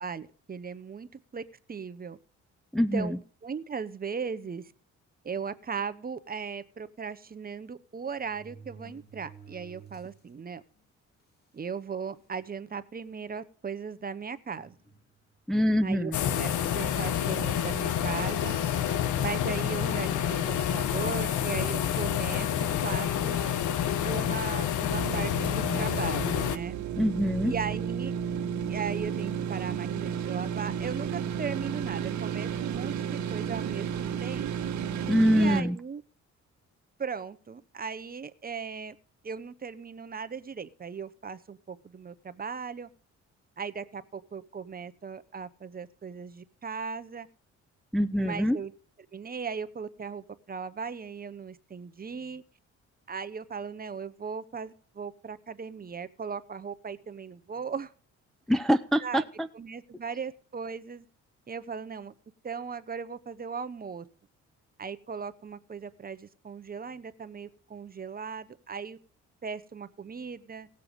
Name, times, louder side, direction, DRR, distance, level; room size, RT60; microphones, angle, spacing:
voice 1, 0.0-1.4 1.7-2.2 2.9-4.7 5.2-10.6 11.5-14.7 15.8-18.6 19.2-23.4 24.0-26.8 27.5-28.1 28.7-34.8 35.3-36.0 37.0-39.0 39.2-42.9 43.6-47.3 48.1-48.7 49.1-52.4 53.1-57.9 59.0-59.2 59.5-61.1 61.5-62.1 62.4-64.1 64.8-69.0 69.4-70.7, right 6 dB, 30° right, 12 dB, 0.9 m, -37 dB
voice 2, 2.7-3.2 15.5-16.2 27.0-27.5 35.1-35.8 47.9-48.6 58.5-59.5, equal, ahead, 8 dB, 0.5 m, -24 dB
sound 1, 4.4-4.7 5.5-5.6 5.9-6.0 7.3-7.4 8.1-10.3 10.8-10.9 11.7-11.8 12.2-12.5 13.1-13.3 14.6-15.4 16.4-16.6, right 5 dB, 35° left, 2.9 m, -52 dB
sound 2, 16.1-26.6, left 9 dB, 80° left, 0.9 m, -28 dB
sound 3, 24.9-35.6, right 8 dB, 70° right, 1.5 m, -32 dB
17.5 x 6.9 x 5.2 m, 0.43 s
cardioid pair, 90°, 30 cm